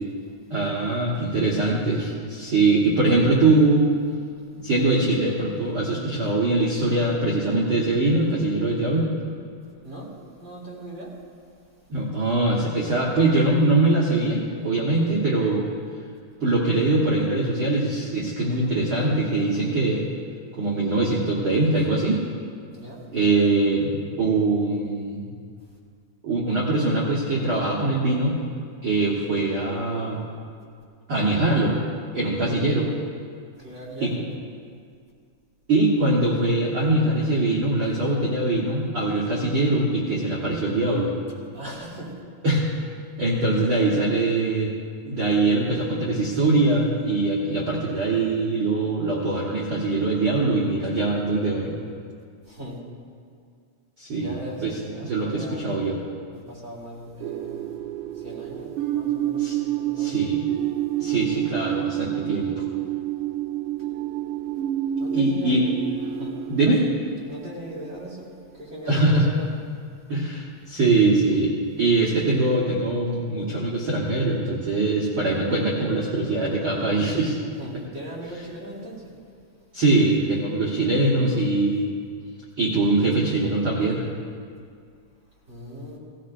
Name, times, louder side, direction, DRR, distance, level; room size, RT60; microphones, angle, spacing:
voice 1, 0.5-3.8 4.6-9.1 11.9-15.7 16.4-20.1 20.5-22.2 23.1-25.2 26.2-28.4 28.8-30.2 31.1-31.7 32.1-32.9 34.0-34.1 35.7-41.1 42.4-42.6 43.2-44.7 45.0-51.7 54.0-56.0 59.4-59.6 60.0-60.5 61.0-62.6 65.1-65.7 66.5-66.9 68.9-69.3 70.1-71.5 71.8-77.4 79.7-81.9 82.6-84.0, right 2 dB, 55° right, -5 dB, 1.5 m, -22 dB
voice 2, 10.4-11.1 22.7-23.0 33.6-34.2 41.5-42.1 42.5-42.6 52.5-52.8 54.1-55.7 56.3-57.7 58.2-60.3 61.1-61.2 65.0-65.8 66.2-66.4 67.3-68.3 68.5-69.5 77.5-79.1 85.5-86.0, right 1 dB, 30° right, -5 dB, 2.2 m, -39 dB
sound 1, 57.2-68.1, right 11 dB, 90° right, 1.7 m, -28 dB
17.5 x 14.5 x 2.5 m, 2.2 s
omnidirectional pair, 4.0 m